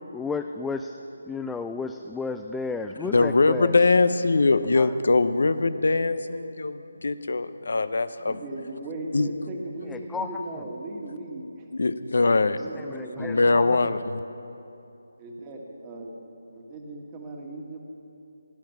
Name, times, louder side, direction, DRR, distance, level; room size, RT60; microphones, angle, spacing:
voice 1, 0.1-1.0 1.2-3.8 4.8-4.9 9.8-10.6 12.7-13.9, left 4 dB, 5° left, 6 dB, 0.3 m, -33 dB
voice 2, 3.0-8.4 9.1-9.3 11.7-12.6 13.2-14.2, left 3 dB, 65° left, 13 dB, 0.7 m, -22 dB
voice 3, 8.2-11.7 12.2-13.3 15.2-16.2 16.5-17.8, right 2 dB, 20° right, 1 dB, 1.7 m, -38 dB
17.5 x 10.5 x 5.9 m, 2.8 s
figure-of-eight pair, 155°, 0 cm